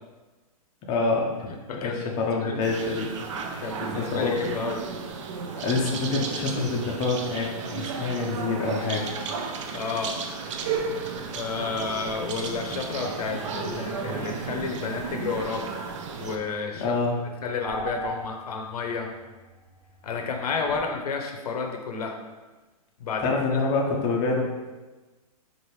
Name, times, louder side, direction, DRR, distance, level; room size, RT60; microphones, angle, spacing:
voice 1, 0.9-1.3 1.8-3.1 3.4-3.6 3.9-4.4 5.6-9.2 16.8-17.1 23.2-24.4, left 3 dB, 25° left, -1 dB, 0.5 m, -26 dB
voice 2, 1.5-2.6 3.6-4.8 9.7-10.2 11.3-15.9 16.2-17.1 17.4-19.1 20.0-22.2 23.0-23.3, left 4 dB, 85° left, 3 dB, 0.7 m, -31 dB
sound 1, 2.6-16.4, right 5 dB, 55° right, 0.5 m, -33 dB
sound 2, 12.0-20.9, right 1 dB, 5° left, 1.0 m, -44 dB
4.7 x 2.5 x 3.1 m, 1.2 s
hypercardioid pair, 150°, 19 cm